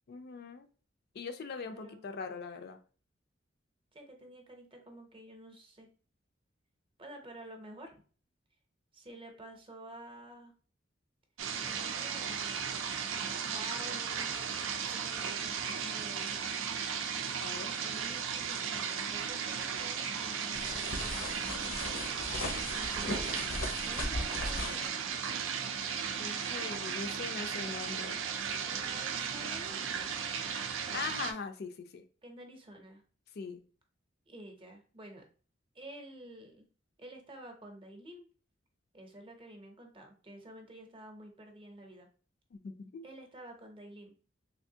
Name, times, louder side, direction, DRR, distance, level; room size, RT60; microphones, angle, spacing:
voice 1, 0.1-0.7 1.1-2.8 16.8-17.7 26.2-28.2 30.9-32.0 33.4-33.6 42.5-43.1, left 4 dB, 55° left, 7 dB, 0.4 m, -41 dB
voice 2, 1.7-2.0 3.9-5.9 7.0-8.0 8.9-10.5 11.6-12.5 13.5-16.5 17.8-21.6 22.7-25.0 28.6-30.3 32.2-33.0 34.3-35.2 35.7-36.7 37.0-38.3 38.9-42.1 43.0-44.2, right 1 dB, 30° right, 3 dB, 0.7 m, -50 dB
sound 1, 11.4-31.3, right 7 dB, 85° right, 0.4 m, -36 dB
sound 2, 20.5-24.9, left 2 dB, 85° left, 0.7 m, -38 dB
3.4 x 2.7 x 2.7 m, 0.40 s
head